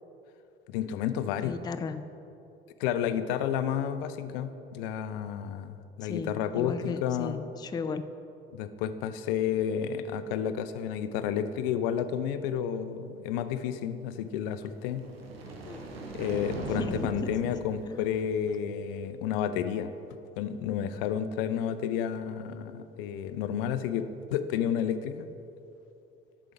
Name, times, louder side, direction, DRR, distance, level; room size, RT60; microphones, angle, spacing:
voice 1, 0.7-1.6 2.8-7.4 8.5-15.0 16.1-19.9 20.4-25.3, left 8 dB, 70° left, 11 dB, 0.5 m, -31 dB
voice 2, 1.4-2.0 6.0-8.1 15.6-15.9 16.8-16.9 17.9-18.0, left 5 dB, 15° left, 11 dB, 0.3 m, -35 dB
sound 1, 14.6-18.9, right 3 dB, 85° right, 0.8 m, -40 dB
8.1 x 5.8 x 5.1 m, 2.8 s
figure-of-eight pair, 55°, 29 cm